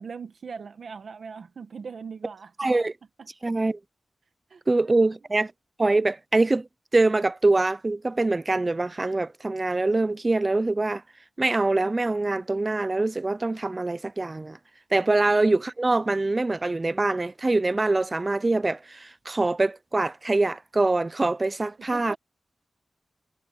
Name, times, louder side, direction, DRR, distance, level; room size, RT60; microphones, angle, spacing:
voice 1, 0.0-2.5 3.2-3.3 4.5-5.0 15.0-15.1 21.8-22.2, right 5 dB, 60° right, 1.2 m, -40 dB
voice 2, 2.6-2.9 3.4-3.8 4.7-5.5 5.8-6.7 6.9-11.0 11.4-14.6 14.9-22.2, right 2 dB, 25° right, 0.3 m, -24 dB
wide cardioid pair, 130°, 0 cm